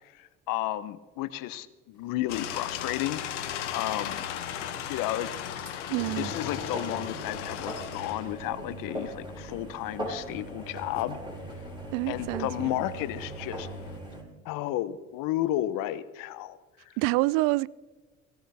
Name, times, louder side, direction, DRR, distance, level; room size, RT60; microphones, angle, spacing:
voice 1, 0.2-3.5 3.7-4.3 4.9-5.3 6.2-11.2 12.1-13.7 14.4-16.6, left 14 dB, 70° left, 0.9 m, -32 dB
sound 1, 2.3-14.0, left 8 dB, 85° left, 1.2 m, -38 dB
sound 2, 2.4-2.5 2.7-3.0 3.3-3.4 3.5-3.6 5.4-14.2, right 1 dB, 15° right, 4.5 m, -40 dB
voice 2, 5.9-6.3 11.9-12.8 17.0-17.7, right 21 dB, 70° right, 0.5 m, -27 dB
17.0 x 17.0 x 3.5 m
hypercardioid pair, 55°, 35 cm